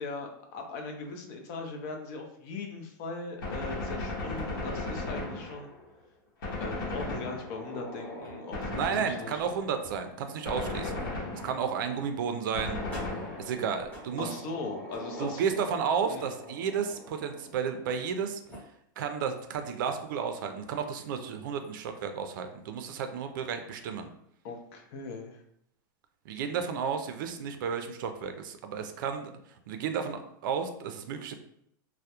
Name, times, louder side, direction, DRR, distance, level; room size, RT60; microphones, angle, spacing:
voice 1, 0.0-5.7 6.6-9.4 14.2-15.4 16.1-16.3 24.4-25.4, left 3 dB, 50° left, 3 dB, 0.5 m, -39 dB
Gunshot gunfire, 3.4-5.9 6.4-7.8 8.5-9.5 10.4-11.8 12.5-13.8, left 2 dB, 85° left, 0.8 m, -36 dB
sound 1, 7.4-18.1 18.5-18.6 19.4-19.5 20.0-20.1 21.4-21.7, left 1 dB, 15° left, 0.8 m, -45 dB
voice 2, 8.7-10.9 11.3-12.8 13.4-14.3 15.2-18.4 19.0-24.1 26.3-29.3 29.7-31.3, right 6 dB, 70° right, 7 dB, 0.4 m, -32 dB
2.2 x 2.0 x 2.8 m, 0.72 s
supercardioid pair, 150°, 11 cm